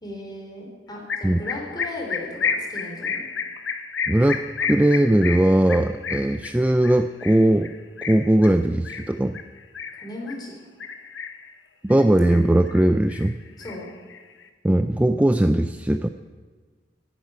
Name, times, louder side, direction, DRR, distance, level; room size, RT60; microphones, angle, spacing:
voice 1, 0.0-3.3 9.9-10.7 13.6-13.9, left 1 dB, 25° left, 0 dB, 3.7 m, -36 dB
sound 1, 1.1-10.4 10.8-11.5 11.9-12.8 13.1-14.4, left 6 dB, 85° left, 1.0 m, -31 dB
voice 2, 4.1-4.4 4.7-7.7 8.1-9.4 11.8-13.3 14.6-16.1, right 1 dB, 10° right, 8 dB, 0.3 m, -19 dB
10.5 x 10.0 x 9.4 m, 1.4 s
head